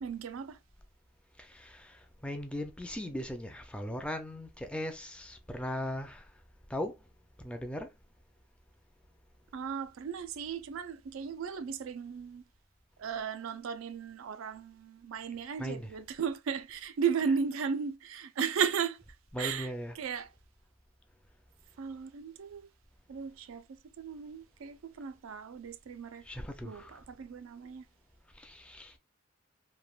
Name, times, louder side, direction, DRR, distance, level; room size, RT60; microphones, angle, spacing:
voice 1, 0.0-0.6 9.5-12.4 13.0-19.0 19.4-19.7 20.0-20.3 21.8-22.7 23.1-23.6 24.0-26.2 26.6-26.8 27.2-27.8, right 6 dB, 90° right, 0.4 m, -35 dB
voice 2, 1.4-6.3 6.7-7.0 7.4-7.9 15.6-16.0 19.3-20.0 26.3-27.0 28.4-28.9, left 1 dB, 5° left, 0.4 m, -38 dB
3.2 x 2.1 x 2.3 m
head